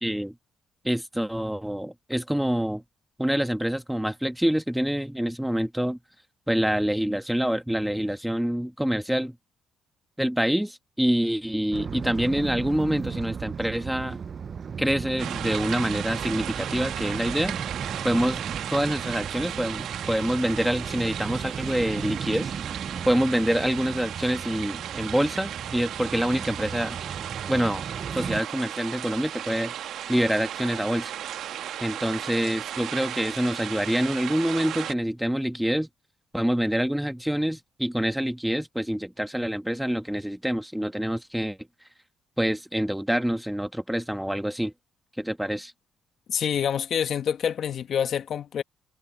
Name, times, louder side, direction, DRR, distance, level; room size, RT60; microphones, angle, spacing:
voice 1, 0.0-0.3 0.8-2.8 3.2-6.0 6.5-9.4 10.2-14.2 14.8-17.6 18.0-18.4 18.7-27.0 27.5-27.9 28.1-29.7 30.1-31.1 31.8-35.9 36.3-41.6 42.4-44.7 45.2-45.7, equal, 5° right, 1.8 m, -26 dB
sound 1, 11.7-28.4, right 6 dB, 45° right, 0.8 m, -36 dB
sound 2, 15.2-34.9, right 10 dB, 75° right, 1.5 m, -35 dB
voice 2, 46.3-48.6, left 8 dB, 60° left, 1.3 m, -27 dB
cardioid pair, 90°, 0 cm